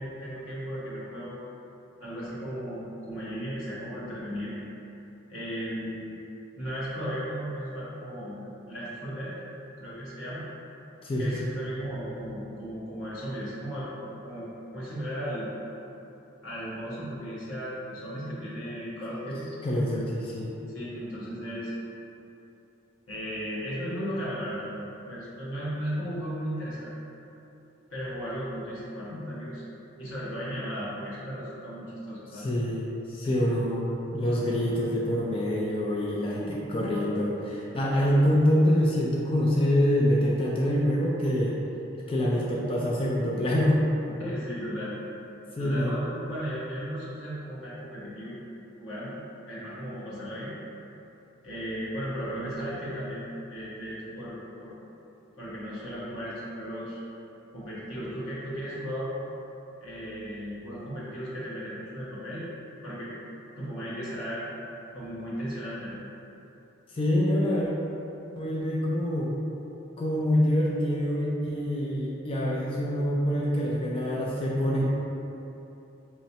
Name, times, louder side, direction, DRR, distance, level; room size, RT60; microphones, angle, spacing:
voice 1, 0.0-1.4 2.0-4.5 5.3-6.2 6.6-9.3 9.8-10.4 11.2-15.5 16.4-19.5 20.7-21.7 23.1-26.9 27.9-29.6 30.0-32.5 33.2-33.5 44.2-44.9 45.6-48.4 48.8-49.2 49.5-50.5 51.4-54.8 55.4-57.0 57.5-59.1 59.8-62.5 62.8-63.1 63.6-64.4 64.9-66.0, equal, 90° left, -8 dB, 1.3 m, -36 dB
voice 2, 11.0-11.6 18.3-18.4 19.6-20.5 29.1-29.3 32.3-41.5 42.1-43.9 45.6-46.0 66.9-67.7 68.3-69.3 70.0-74.8, equal, 25° left, -4 dB, 0.4 m, -26 dB
4.8 x 3.1 x 2.8 m, 3.0 s
head